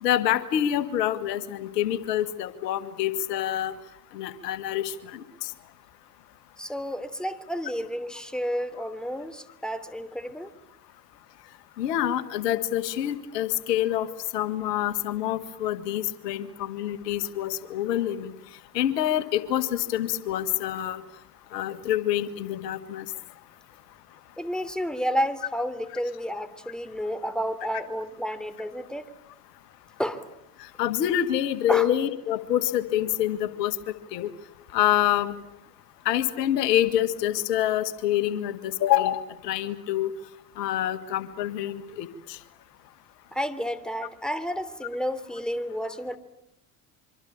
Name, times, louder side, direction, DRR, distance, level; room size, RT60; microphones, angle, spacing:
voice 1, 0.0-3.7 4.1-5.5 11.8-14.1 14.3-18.3 18.7-21.0 21.5-23.1 30.8-33.8 34.1-34.3 34.7-35.3 36.1-40.1 40.6-42.4, left 12 dB, 80° left, 12 dB, 1.7 m, -26 dB
voice 2, 6.6-10.5 24.4-29.1 30.0-30.2 31.7-31.9 43.3-46.2, equal, ahead, 13 dB, 3.0 m, -31 dB
25.5 x 25.0 x 8.6 m, 0.79 s
hypercardioid pair, 65°, 48 cm